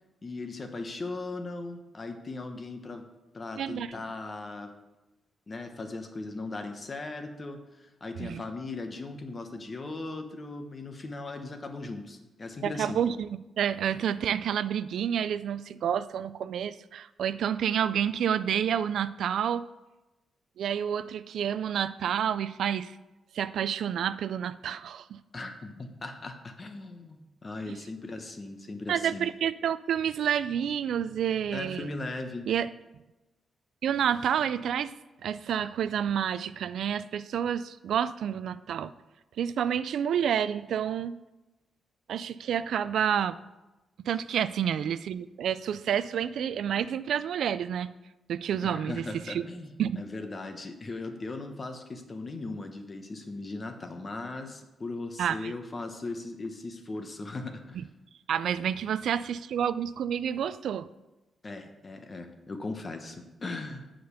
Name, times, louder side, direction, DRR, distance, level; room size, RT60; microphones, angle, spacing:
voice 1, 0.2-3.0 3.3-4.7 5.5-13.0 25.3-29.3 31.5-32.5 48.6-57.8 61.4-63.9, left 2 dB, 30° left, 6 dB, 1.0 m, -38 dB
voice 2, 3.6-3.9 8.2-8.4 12.6-19.6 20.6-22.9 23.3-25.2 27.7-27.8 28.9-31.9 32.5-32.7 33.8-34.9 35.2-38.9 39.4-41.1 42.1-43.4 44.1-47.9 48.3-49.5 49.8-50.1 55.2-55.5 57.8-57.9 58.3-60.9, right 9 dB, 80° right, 15 dB, 0.3 m, -29 dB
8.0 x 5.1 x 6.7 m, 1.0 s
cardioid pair, 120°, 0 cm